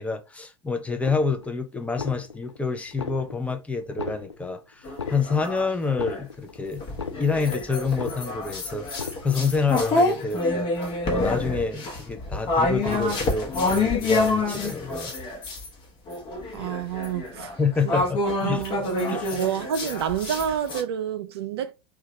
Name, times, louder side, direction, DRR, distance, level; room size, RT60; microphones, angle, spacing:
voice 1, 0.0-6.8 7.2-15.1 17.6-18.6 19.1-19.4, left 4 dB, 10° left, 0.5 m, -28 dB
sound 1, 1.0-1.6 1.9-2.6 2.9-3.6 3.9-4.6 4.9-5.6 5.9-6.6 6.9-7.6 7.9-8.6 8.9-9.6, left 5 dB, 90° left, 0.5 m, -36 dB
sound 2, 4.9-6.2 6.8-15.7 16.1-20.8, left 2 dB, 35° left, 0.9 m, -27 dB
voice 2, 16.5-17.6 17.8-17.9 18.4-21.7, right 9 dB, 65° right, 0.4 m, -29 dB
2.8 x 2.3 x 2.8 m
figure-of-eight pair, 85°, 14 cm